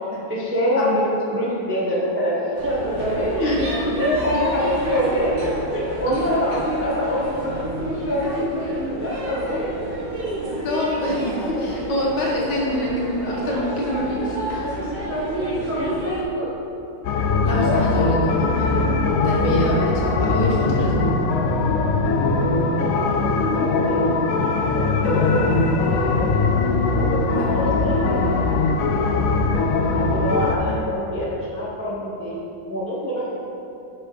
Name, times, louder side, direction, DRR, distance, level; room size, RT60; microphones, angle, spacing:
voice 1, 0.3-1.0 1.3-9.7 10.2-10.6 11.8-11.9 14.5-16.5 17.1-17.3 17.6-17.8 21.4-21.7 22.4-24.1 24.6-26.4 26.8-28.4 29.9-32.4 32.7-33.3, equal, 10° right, -7 dB, 0.8 m, -26 dB
sound 1, 2.6-16.2, right 1 dB, 35° right, 1.2 m, -30 dB
voice 2, 10.6-14.2 14.5-14.6 17.4-19.0 19.2-21.0 23.4-23.6 27.3-28.2 30.6-30.7, left 1 dB, 70° left, -4 dB, 2.0 m, -26 dB
sound 2, 17.0-30.6, left 3 dB, 85° left, 0.7 m, -20 dB
9.0 x 5.9 x 3.2 m, 2.8 s
omnidirectional pair, 2.1 m